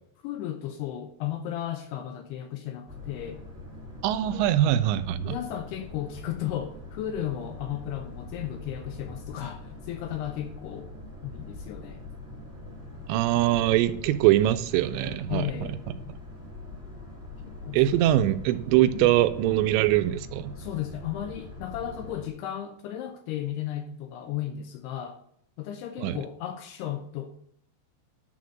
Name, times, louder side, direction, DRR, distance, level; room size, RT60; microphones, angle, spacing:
voice 1, 0.2-3.4 4.3-4.4 4.7-4.8 5.2-10.9 11.2-12.0 15.3-15.8 17.4-18.0 18.9-19.2 20.6-25.2 25.6-27.3, left 11 dB, 80° left, 2.4 m, -34 dB
Boat Water vehicle, 2.9-22.3, left 2 dB, 10° right, 1.3 m, -43 dB
voice 2, 4.0-5.4 13.1-15.5 17.7-20.5 26.0-26.2, right 13 dB, 85° right, 2.7 m, -23 dB
10.5 x 3.9 x 6.4 m
omnidirectional pair, 5.2 m